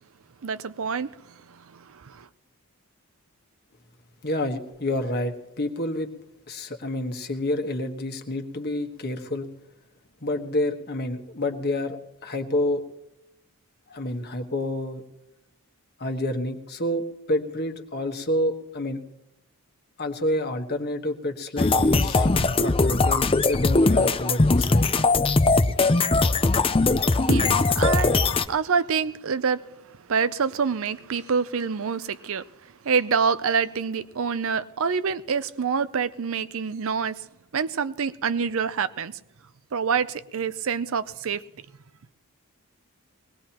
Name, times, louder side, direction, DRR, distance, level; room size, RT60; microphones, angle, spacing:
voice 1, 0.4-2.3 27.1-28.2 28.5-32.5 32.8-37.2 37.5-39.2 39.7-41.4, right 6 dB, 60° right, 0.5 m, -27 dB
voice 2, 4.2-6.1 6.5-9.5 10.2-12.8 13.9-15.0 16.0-19.0 20.0-22.3 22.6-24.9, left 1 dB, 45° left, 1.4 m, -28 dB
sound 1, 21.6-28.4, left 3 dB, 25° left, 0.5 m, -20 dB
22.0 x 19.0 x 3.0 m
head